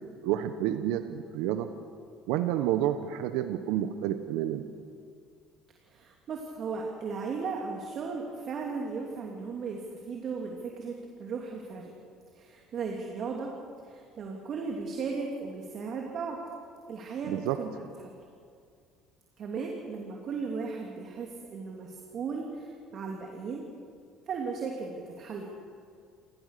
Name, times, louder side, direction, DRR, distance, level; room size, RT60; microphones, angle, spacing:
voice 1, 0.0-1.7 2.3-4.6 17.3-17.6, right 12 dB, 75° right, 9 dB, 1.0 m, -29 dB
voice 2, 5.9-11.9 12.3-13.5 13.8-16.4 16.9-18.1 19.4-23.6 24.3-25.7, right 4 dB, 50° right, 0 dB, 2.9 m, -36 dB
29.0 x 15.0 x 6.7 m, 2.2 s
hypercardioid pair, 75°, 0 cm